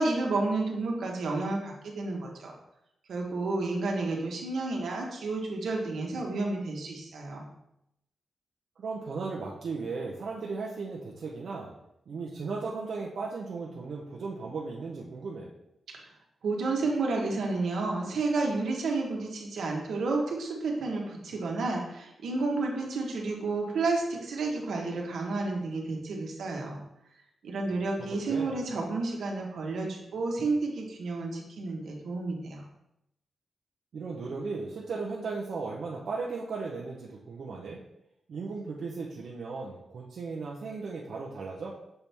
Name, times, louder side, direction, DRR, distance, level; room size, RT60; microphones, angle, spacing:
voice 1, 0.0-2.5 3.1-7.4 16.4-26.8 27.4-32.6, right 3 dB, 75° right, 0 dB, 1.2 m, -31 dB
voice 2, 8.8-11.7 12.1-15.5 28.1-28.5 33.9-37.8 38.3-41.8, right 4 dB, 60° right, -4 dB, 0.7 m, -36 dB
6.7 x 4.4 x 3.4 m, 0.82 s
wide cardioid pair, 170°, 0 cm